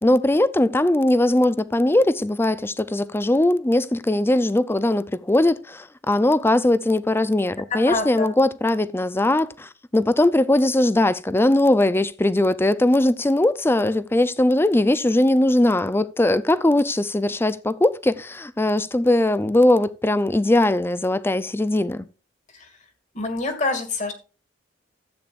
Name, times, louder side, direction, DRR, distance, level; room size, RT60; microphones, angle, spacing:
voice 1, 0.0-22.1, left 1 dB, 15° left, 0.5 m, -20 dB
voice 2, 7.7-8.3 22.5-22.7 23.1-24.1, left 3 dB, 40° left, 2.2 m, -26 dB
14.0 x 8.6 x 2.5 m
head